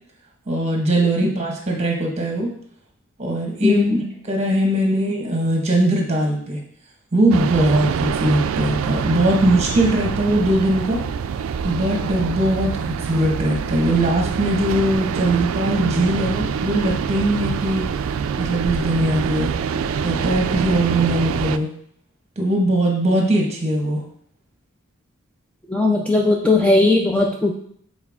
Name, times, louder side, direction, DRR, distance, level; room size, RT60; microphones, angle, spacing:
voice 1, 0.5-2.5 3.2-3.8 4.2-6.6 7.1-11.0 11.6-17.9 18.4-19.5 20.0-21.7 22.4-24.0, right 1 dB, 30° right, 0 dB, 1.4 m, -20 dB
voice 2, 3.6-4.0 25.7-27.6, left 2 dB, 5° left, -1 dB, 0.4 m, -17 dB
sound 1, 7.3-21.6, right 6 dB, 75° right, 0.3 m, -25 dB
7.1 x 4.3 x 3.6 m, 0.64 s
head